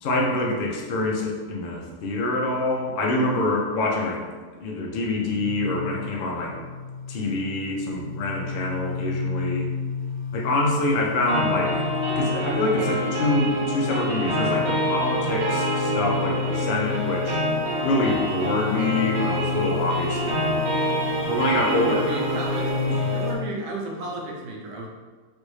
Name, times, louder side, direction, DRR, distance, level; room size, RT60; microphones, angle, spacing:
voice 1, 0.0-4.2 4.6-6.6 7.1-9.7 10.3-11.9 12.2-17.4 17.8-20.6 21.2-22.2 22.9-23.0, left 2 dB, 75° left, -1 dB, 0.5 m, -26 dB
sound 1, 5.4-23.4, left 5 dB, 40° left, 1.2 m, -32 dB
sound 2, 11.3-23.3, equal, 45° right, 1.0 m, -27 dB
voice 2, 21.7-22.7 23.1-24.9, right 1 dB, 75° right, -2 dB, 1.2 m, -32 dB
3.3 x 2.6 x 3.1 m, 1.4 s
omnidirectional pair, 1.7 m